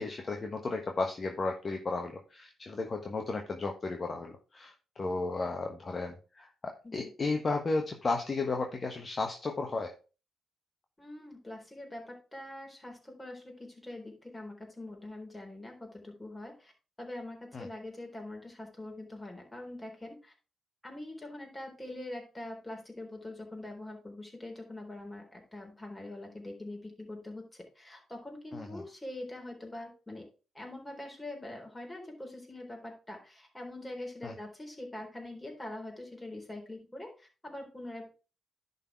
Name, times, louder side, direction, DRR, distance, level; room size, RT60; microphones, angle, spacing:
voice 1, 0.0-9.9 17.5-17.7 28.5-28.8 34.2-34.3, left 3 dB, 40° left, 3 dB, 1.3 m, -34 dB
voice 2, 11.0-16.7 17.0-20.3 20.8-30.3 30.5-38.1, left 1 dB, 15° left, 1 dB, 3.8 m, -44 dB
10.5 x 4.3 x 4.6 m, 0.33 s
hypercardioid pair, 40°, 0 cm